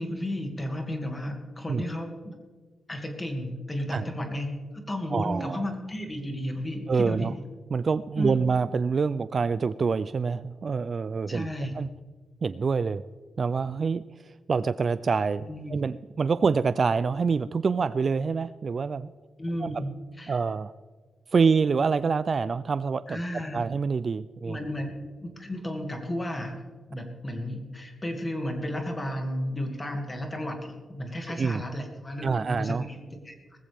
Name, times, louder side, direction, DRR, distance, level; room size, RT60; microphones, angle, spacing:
voice 1, 0.0-2.2 2.9-4.5 4.7-7.3 8.1-8.5 11.3-11.7 15.4-15.8 19.4-20.4 23.1-23.6 24.4-24.9 25.2-26.6 26.9-33.3, left 1 dB, 15° left, 3 dB, 2.2 m, -33 dB
voice 2, 5.1-5.6 6.9-7.3 7.7-11.5 11.7-11.9 12.4-13.0 13.4-14.0 14.5-19.1 19.6-19.8 20.3-20.7 21.3-23.2 23.5-24.6 31.3-31.6 32.2-32.8, right 5 dB, 35° right, 15 dB, 0.3 m, -26 dB
19.0 x 15.0 x 3.5 m, 1.4 s
wide cardioid pair, 165°, 0 cm